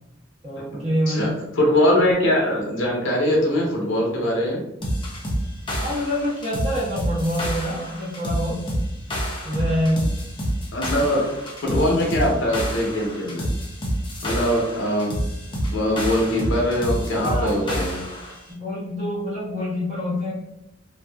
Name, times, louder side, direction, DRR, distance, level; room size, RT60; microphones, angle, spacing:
voice 1, 0.4-1.3 5.8-8.6 9.4-10.1 10.9-11.2 11.6-12.1 17.1-17.8 18.5-20.3, equal, 35° right, -7 dB, 1.1 m, -26 dB
voice 2, 1.5-4.6 10.7-11.2 11.6-13.5 14.2-15.1 15.7-18.0, left 1 dB, 70° left, -2 dB, 0.7 m, -22 dB
sound 1, 4.8-18.4, equal, 25° left, 0.5 m, -28 dB
2.6 x 2.3 x 2.2 m, 0.87 s
head